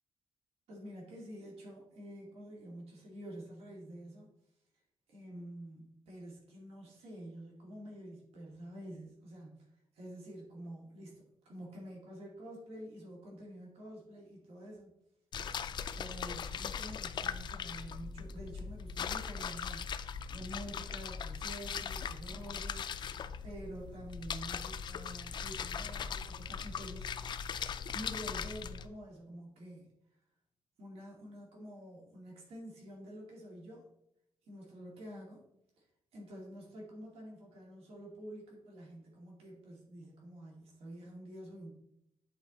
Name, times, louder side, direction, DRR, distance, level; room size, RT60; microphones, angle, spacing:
voice 1, 0.7-4.3 5.1-9.7 9.9-14.9 15.9-23.1 23.4-27.3 27.9-29.9 30.8-33.9 34.4-35.4 35.8-35.9 36.1-41.7, equal, 80° right, -3 dB, 2.4 m, -48 dB
sound 1, 15.3-28.9, left 7 dB, 50° left, 0.4 m, -40 dB
9.3 x 4.5 x 4.0 m, 0.82 s
cardioid pair, 145°, 10 cm